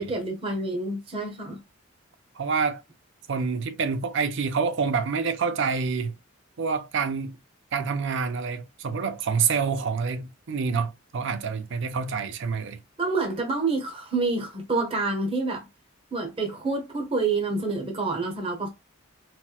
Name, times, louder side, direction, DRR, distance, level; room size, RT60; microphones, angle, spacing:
voice 1, 0.0-1.6 13.0-15.7 16.1-18.7, right 3 dB, 25° right, 0.7 m, -28 dB
voice 2, 2.4-2.8 3.3-6.1 6.6-7.4 7.7-12.8, right 5 dB, 60° right, 0.5 m, -27 dB
4.2 x 2.1 x 2.3 m
head